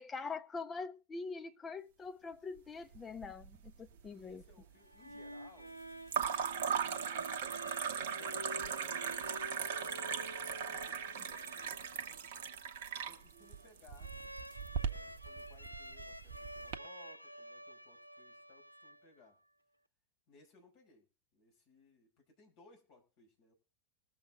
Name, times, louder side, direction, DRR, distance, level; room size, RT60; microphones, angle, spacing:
voice 1, 0.0-4.4, left 4 dB, 20° left, 1.1 m, -44 dB
sound 1, 2.9-3.7 4.0-4.6 6.1-16.8, right 7 dB, 55° right, 1.0 m, -39 dB
voice 2, 4.1-5.8 6.3-7.3 7.8-12.5 13.0-14.1 14.7-19.4 20.3-23.5, left 3 dB, 45° left, 5.6 m, -64 dB
sound 2, 4.8-19.4, equal, 90° right, 0.5 m, -50 dB
21.5 x 7.3 x 3.7 m
figure-of-eight pair, 90°, 0 cm